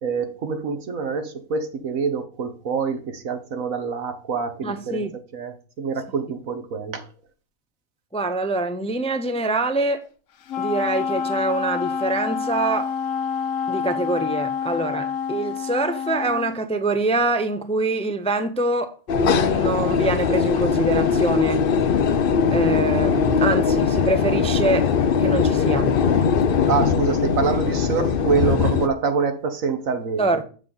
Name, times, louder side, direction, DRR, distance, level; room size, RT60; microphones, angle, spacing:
voice 1, 0.0-5.1 5.3-7.1 26.7-30.4, right 5 dB, 85° right, 1.7 m, -26 dB
voice 2, 4.6-5.1 8.1-10.0 10.6-12.9 13.7-19.0 19.2-21.6 22.5-24.9 25.2-26.0 30.2-30.4, right 2 dB, 10° left, 0.4 m, -24 dB
Wind instrument woodwind instrument, 10.5-16.6, left 6 dB, 75° left, 1.2 m, -27 dB
sound 1, 19.1-28.9, left 6 dB, 50° left, 0.8 m, -20 dB
7.3 x 6.9 x 4.0 m
omnidirectional pair, 1.4 m